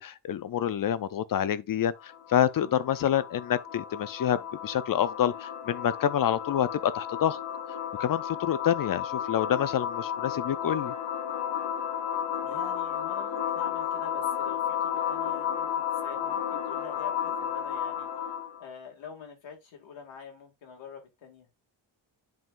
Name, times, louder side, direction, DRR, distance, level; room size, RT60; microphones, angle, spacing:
voice 1, 0.0-7.4 8.0-10.9, left 10 dB, 50° left, 0.5 m, -27 dB
sound 1, 2.0-18.6, left 9 dB, 65° left, 1.4 m, -33 dB
voice 2, 12.4-18.3 18.6-21.5, left 6 dB, 80° left, 2.2 m, -46 dB
10.5 x 3.7 x 2.5 m
wide cardioid pair, 155°, 46 cm